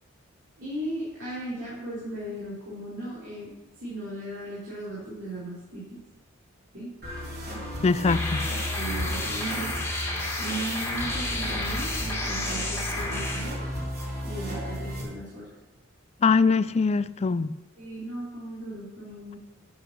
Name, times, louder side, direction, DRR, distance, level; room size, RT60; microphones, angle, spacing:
voice 1, 0.6-6.0 6.7-6.9 8.7-9.7 10.4-13.6 14.2-15.5 17.8-19.4, right 1 dB, 65° right, 4.1 m, -37 dB
sound 1, 7.0-15.0, equal, 50° right, 3.8 m, -35 dB
voice 2, 7.8-8.5 16.2-17.5, left 4 dB, 30° left, 0.3 m, -22 dB
sound 2, 8.1-13.4, left 2 dB, 15° left, 1.9 m, -31 dB
10.5 x 9.1 x 6.1 m
head